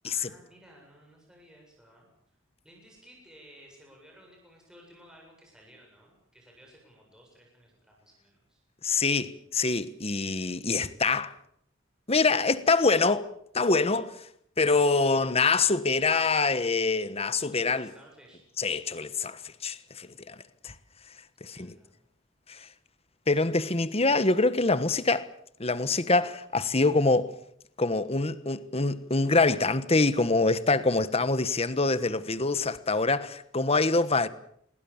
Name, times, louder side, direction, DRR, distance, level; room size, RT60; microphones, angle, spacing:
voice 1, 0.0-2.1 2.6-8.6 17.5-18.4 21.5-22.0, equal, 5° right, 7.7 m, -56 dB
voice 2, 8.8-11.3 12.1-14.3 14.6-17.9 18.6-20.3 20.6-20.7 21.4-21.7 22.5-22.7 23.3-25.3 25.6-27.3 27.8-34.3, left 3 dB, 30° left, 1.3 m, -25 dB
28.0 x 21.5 x 7.3 m
head